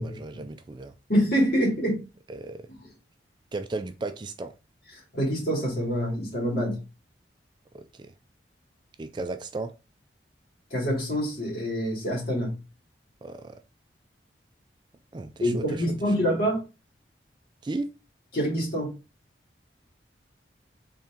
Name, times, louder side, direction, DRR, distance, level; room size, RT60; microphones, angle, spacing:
voice 1, 0.0-0.9 2.3-2.7 3.5-4.5 7.7-8.1 9.0-9.7 13.2-13.6 15.1-15.8 17.6-17.9, right 2 dB, 25° right, 0.3 m, -35 dB
voice 2, 1.1-2.0 2.8-2.9 5.1-6.8 10.7-12.5 15.4-16.6 18.3-18.9, equal, 55° left, 2.4 m, -26 dB
4.3 x 3.5 x 3.5 m
head